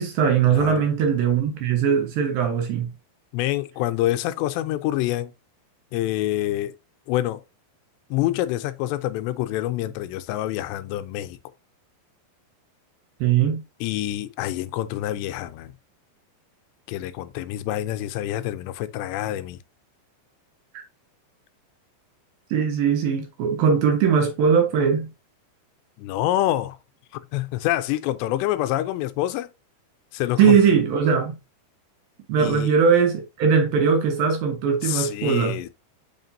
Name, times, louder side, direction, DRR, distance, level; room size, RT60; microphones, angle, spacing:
voice 1, 0.0-2.9 13.2-13.6 20.7-20.8 22.5-25.1 30.4-31.4 32.3-35.6, right 6 dB, 65° right, 2.6 m, -20 dB
voice 2, 0.5-0.8 3.3-5.3 5.9-6.8 7.1-7.4 8.1-11.4 13.8-15.7 16.9-19.6 26.0-26.8 27.1-29.5 30.1-30.6 32.4-32.7 34.8-35.7, left 14 dB, 85° left, 2.7 m, -26 dB
7.1 x 5.7 x 2.6 m
omnidirectional pair, 5.1 m